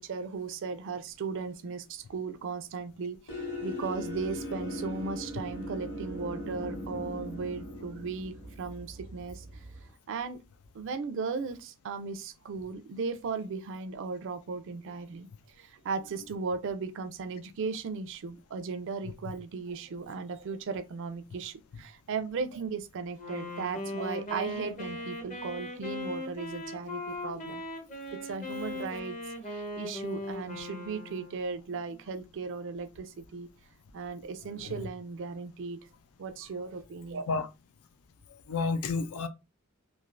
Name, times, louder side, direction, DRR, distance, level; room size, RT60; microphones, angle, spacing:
voice 1, 0.0-9.6 10.1-10.4 10.7-15.3 15.6-27.6 28.1-29.2 29.4-33.5 33.9-35.8 36.2-37.2, right 4 dB, 60° right, 0.4 m, -36 dB
sound 1, 3.3-9.9, left 1 dB, 55° left, 1.4 m, -39 dB
Wind instrument woodwind instrument, 23.2-31.5, left 1 dB, 35° left, 0.7 m, -39 dB
voice 2, 38.3-39.3, left 4 dB, 80° left, 0.4 m, -31 dB
3.2 x 2.4 x 2.5 m
head